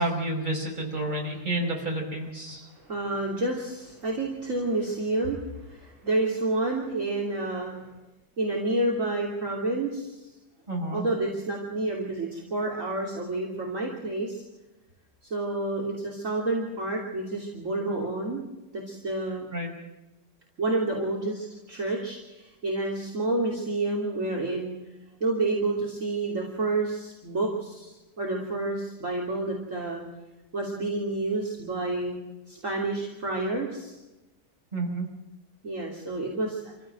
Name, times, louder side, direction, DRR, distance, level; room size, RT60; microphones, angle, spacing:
voice 1, 0.0-2.7 10.7-11.0 19.5-19.7 34.7-35.1, right 1 dB, 25° right, 0 dB, 5.3 m, -30 dB
voice 2, 2.8-7.8 8.4-10.2 10.9-14.4 15.2-18.4 18.7-19.5 20.6-24.7 25.2-30.0 30.5-32.2 32.5-34.0 35.6-36.7, right 2 dB, 45° right, -2 dB, 3.5 m, -29 dB
26.5 x 15.5 x 7.7 m, 1.0 s
omnidirectional pair, 1.9 m